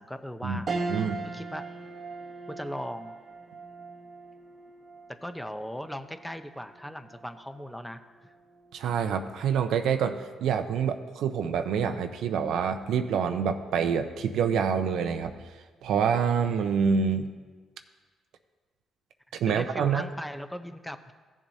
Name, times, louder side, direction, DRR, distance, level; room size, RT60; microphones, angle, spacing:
voice 1, 0.0-0.8 1.2-1.7 2.5-3.1 5.2-8.3 19.5-21.1, equal, 5° left, 9 dB, 0.6 m, -38 dB
sound 1, 0.7-10.3 10.7-10.8 12.2-12.6, right 3 dB, 50° right, 0.9 m, -40 dB
voice 2, 8.7-15.3 15.8-17.3 19.3-20.0, right 7 dB, 80° right, 8 dB, 0.6 m, -26 dB
15.0 x 7.2 x 2.7 m, 1.4 s
cardioid pair, 90°, 0 cm